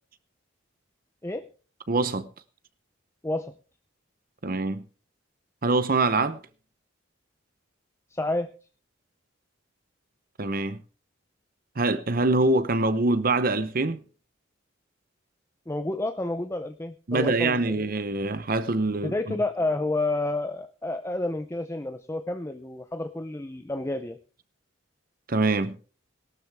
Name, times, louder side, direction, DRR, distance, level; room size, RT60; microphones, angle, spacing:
voice 1, 1.9-2.3 4.4-4.8 5.6-6.4 10.4-10.8 11.8-14.0 17.1-19.1 25.3-25.7, right 2 dB, 45° right, 0.7 m, -24 dB
voice 2, 8.1-8.5 15.7-17.9 19.0-24.2, left 2 dB, 15° left, 0.5 m, -30 dB
17.5 x 12.5 x 3.5 m
head